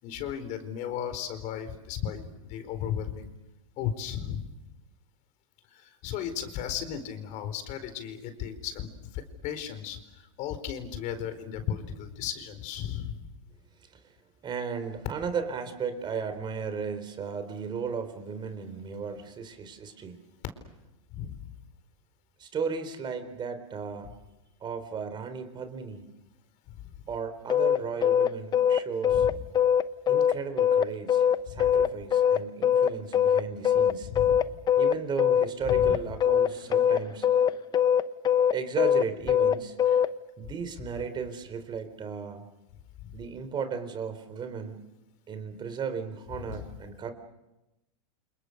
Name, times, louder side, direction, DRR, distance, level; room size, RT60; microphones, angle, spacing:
voice 1, 0.0-3.3 3.8-4.5 5.7-13.2 21.1-21.5 26.7-26.9 29.1-29.4 31.5-31.7 34.0-34.5 35.6-35.9 39.9-40.0 40.4-40.5 43.0-43.2 46.3-46.6, left 9 dB, 45° left, 10 dB, 4.5 m, -35 dB
voice 2, 14.4-20.2 22.4-24.1 24.6-26.0 27.1-29.3 30.1-34.1 34.8-37.3 38.5-39.8 40.4-42.5 43.1-44.8 45.3-47.1, right 6 dB, 25° right, 9 dB, 4.0 m, -35 dB
sound 1, 27.5-40.1, left 9 dB, 25° left, 1.0 m, -22 dB
30.0 x 28.0 x 6.7 m, 0.98 s
hypercardioid pair, 120°, 17 cm